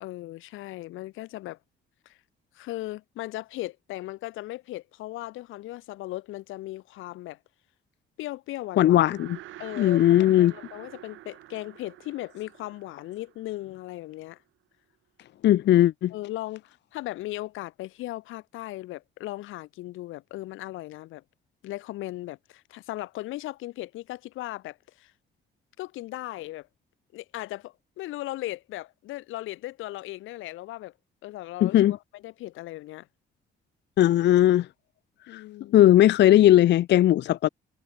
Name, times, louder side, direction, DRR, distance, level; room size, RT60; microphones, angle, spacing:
voice 1, 0.0-1.6 2.1-2.2 2.5-7.4 8.2-9.0 9.6-14.4 16.1-21.2 21.6-25.1 25.8-26.7 27.1-30.9 31.2-33.1 35.3-35.8, left 17 dB, 90° left, 0.9 m, -37 dB
sound 1, 8.7-14.1, right 14 dB, 85° right, 3.4 m, -47 dB
voice 2, 8.8-9.4 9.8-10.5 15.4-16.1 31.6-32.0 34.0-34.7 35.3-35.4 35.7-37.5, left 13 dB, 60° left, 0.5 m, -18 dB
cardioid pair, 90°, 20 cm